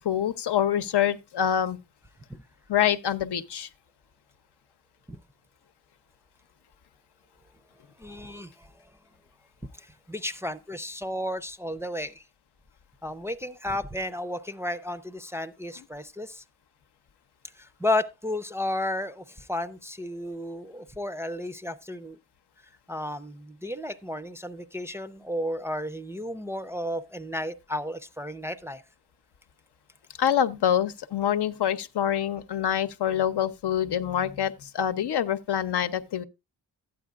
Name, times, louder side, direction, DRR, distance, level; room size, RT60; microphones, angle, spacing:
voice 1, 0.0-1.8 2.7-3.7 30.2-36.2, left 9 dB, 85° left, 0.8 m, -26 dB
voice 2, 8.0-8.7 9.8-12.2 13.0-16.4 17.6-22.2 22.9-28.8, left 1 dB, 5° right, 0.4 m, -33 dB
12.5 x 9.2 x 2.4 m
wide cardioid pair, 175°, 39 cm